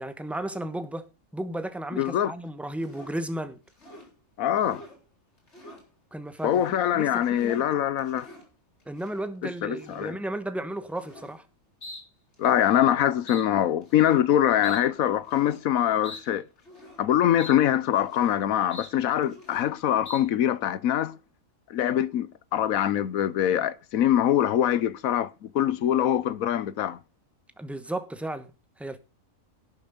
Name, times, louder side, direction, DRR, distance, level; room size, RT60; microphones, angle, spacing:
voice 1, 0.0-3.6 6.1-6.6 6.9-7.6 8.9-11.4 27.6-28.5 28.8-29.0, right 1 dB, ahead, 0.9 m, -34 dB
voice 2, 1.9-2.3 4.4-4.8 6.4-8.3 9.4-10.2 12.4-16.4 17.0-21.2 21.7-27.0, left 11 dB, 90° left, 1.2 m, -24 dB
sound 1, 2.8-3.2 3.7-4.1 4.6-5.0 5.4-5.8 6.3-6.8 7.1-7.6 8.0-8.5 9.0-9.3 9.8-10.1 11.0-11.4 11.8-12.0 12.3-12.8 13.3-13.4 13.8-14.2 14.6-14.8 15.2-15.6 16.0-16.2 16.6-17.0 17.4-17.6 17.8-18.4 18.7-18.9 19.2-19.7 20.0-20.2, left 2 dB, 55° left, 4.1 m, -45 dB
11.5 x 8.0 x 5.1 m
omnidirectional pair, 1.4 m